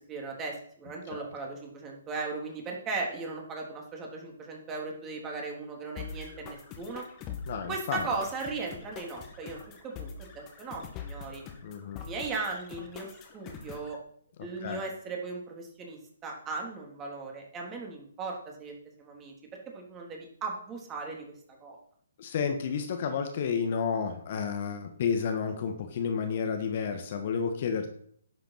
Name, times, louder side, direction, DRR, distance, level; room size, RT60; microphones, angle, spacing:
voice 1, 0.1-7.0 7.7-11.4 12.0-13.1 13.3-14.0 14.4-19.3 19.7-21.3 21.6-21.8, right 3 dB, 20° right, 0 dB, 3.4 m, -37 dB
sound 1, 6.0-13.9, left 6 dB, 25° left, 2.1 m, -44 dB
voice 2, 7.5-8.1 11.6-12.0 14.6-14.8 22.2-27.9, left 6 dB, 45° left, 6 dB, 1.8 m, -31 dB
11.0 x 8.2 x 5.9 m, 0.63 s
figure-of-eight pair, 135°, 0 cm